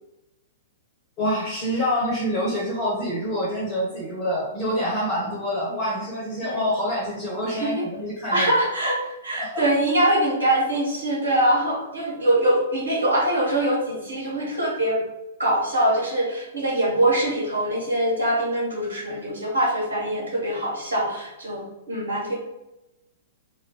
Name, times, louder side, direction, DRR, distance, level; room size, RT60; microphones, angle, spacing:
voice 1, 1.2-8.5 9.3-9.6, equal, 25° left, -6 dB, 1.2 m, -26 dB
voice 2, 8.3-15.0 15.4-22.3, right 1 dB, 70° right, -4 dB, 1.4 m, -23 dB
2.7 x 2.5 x 3.5 m, 0.95 s
figure-of-eight pair, 105°, 0 cm